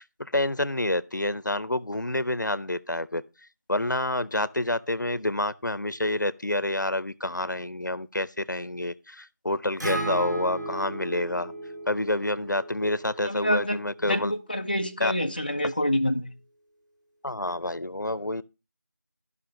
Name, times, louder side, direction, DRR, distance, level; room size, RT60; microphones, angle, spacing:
voice 1, 0.2-3.2 3.7-11.5 11.9-14.3 15.0-15.1 17.2-18.4, left 1 dB, 80° left, 0.8 m, -28 dB
Acoustic guitar, 9.8-14.0, right 1 dB, 70° right, 4.3 m, -35 dB
voice 2, 13.2-16.3, left 1 dB, 30° left, 0.7 m, -27 dB
13.0 x 5.7 x 5.1 m
figure-of-eight pair, 175°, 10 cm